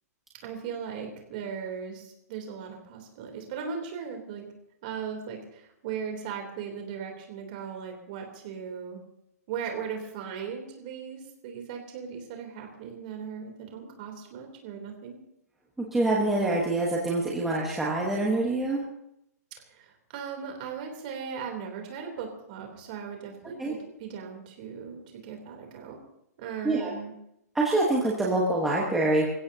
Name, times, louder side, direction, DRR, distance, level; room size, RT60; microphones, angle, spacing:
voice 1, 0.4-4.5 4.8-9.0 9.5-15.2 19.7-26.0 26.4-27.1, right 6 dB, 30° right, 2 dB, 3.4 m, -38 dB
voice 2, 15.8-18.8 23.6-23.8 26.6-26.9 27.5-29.3, right 2 dB, 5° right, -4 dB, 1.3 m, -25 dB
26.5 x 16.0 x 2.9 m, 0.79 s
hypercardioid pair, 175°, 9 cm